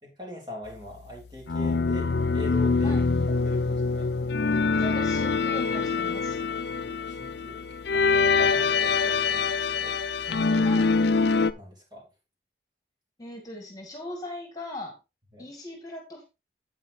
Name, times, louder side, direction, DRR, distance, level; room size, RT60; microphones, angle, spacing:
voice 1, 0.0-4.1 6.7-10.8 11.6-12.0 15.3-15.5, left 2 dB, 25° right, -1 dB, 3.5 m, -43 dB
sound 1, 1.5-11.5, left 4 dB, 70° left, 0.6 m, -24 dB
voice 2, 4.8-6.4 10.6-10.9 13.2-15.0 15.4-16.2, left 1 dB, 20° left, 2 dB, 2.1 m, -39 dB
10.5 x 8.8 x 2.7 m, 0.26 s
head